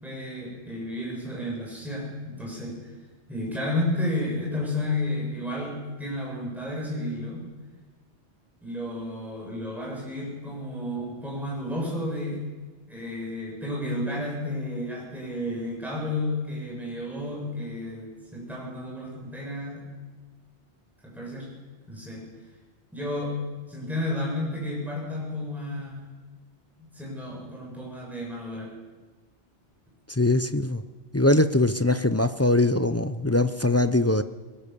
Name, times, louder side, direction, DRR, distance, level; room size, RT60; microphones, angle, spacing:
voice 1, 0.0-2.9 3.3-7.4 8.6-12.4 12.9-19.8 21.0-21.5 21.9-22.2 22.9-23.3 23.7-26.0 26.9-28.7, left 1 dB, ahead, -4 dB, 6.4 m, -32 dB
voice 2, 30.1-30.8 31.1-34.2, left 2 dB, 15° left, 11 dB, 0.5 m, -22 dB
21.5 x 19.5 x 7.0 m, 1.3 s
omnidirectional pair, 1.2 m